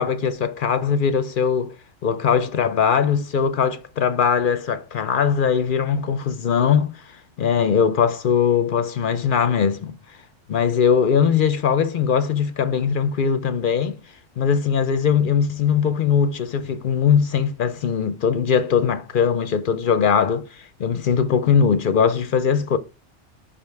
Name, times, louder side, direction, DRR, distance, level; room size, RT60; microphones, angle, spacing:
voice 1, 0.0-1.7 2.0-10.0 10.5-14.0 14.4-22.8, left 7 dB, 60° left, 0.6 m, -20 dB
5.6 x 5.2 x 4.5 m
omnidirectional pair, 1.3 m